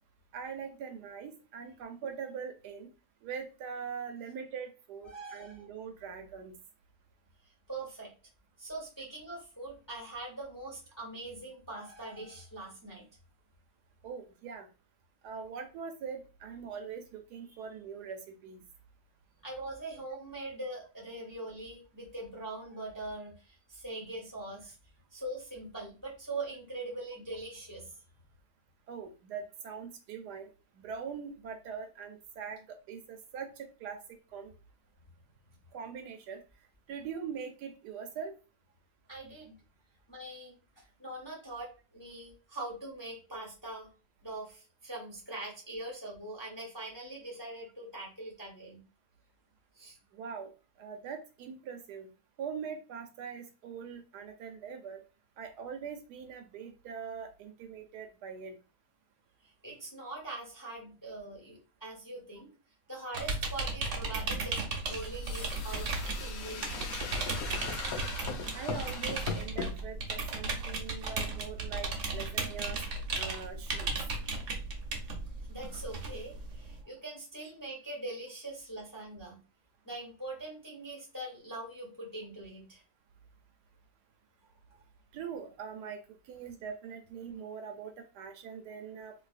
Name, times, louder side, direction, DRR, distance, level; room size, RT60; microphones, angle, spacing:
voice 1, 0.3-2.9 3.2-6.5 14.0-14.7 15.2-18.6 28.9-30.5 30.8-34.0 34.3-34.5 35.7-36.4 36.9-38.4 50.1-50.5 50.8-52.1 52.4-55.0 55.4-58.6 68.5-72.8 73.1-73.9 85.1-89.1, right 6 dB, 75° right, 6 dB, 1.1 m, -42 dB
voice 2, 5.0-5.7 7.7-8.1 8.6-13.1 19.4-24.7 25.1-27.9 39.1-39.5 40.1-43.9 44.2-48.8 49.7-50.0 59.6-62.5 62.9-67.0 75.5-79.4 79.8-82.8, right 2 dB, 15° left, -2 dB, 0.6 m, -42 dB
sound 1, 63.1-76.8, right 3 dB, 55° right, 0.9 m, -36 dB
sound 2, 64.9-69.7, left 5 dB, 65° left, 1.1 m, -39 dB
3.9 x 2.6 x 2.4 m, 0.33 s
omnidirectional pair, 1.8 m